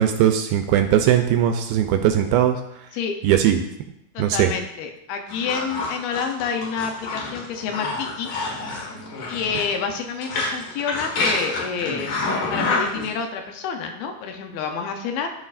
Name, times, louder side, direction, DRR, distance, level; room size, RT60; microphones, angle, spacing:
voice 1, 0.0-2.6 3.2-3.6 4.2-4.5, right 10 dB, 80° right, 6 dB, 2.3 m, -19 dB
voice 2, 4.1-8.3 9.3-12.2 12.5-15.3, left 6 dB, 80° left, 4 dB, 2.5 m, -28 dB
sound 1, 5.3-13.1, left 3 dB, 60° left, 2.8 m, -27 dB
14.0 x 5.5 x 2.5 m, 0.82 s
omnidirectional pair, 4.6 m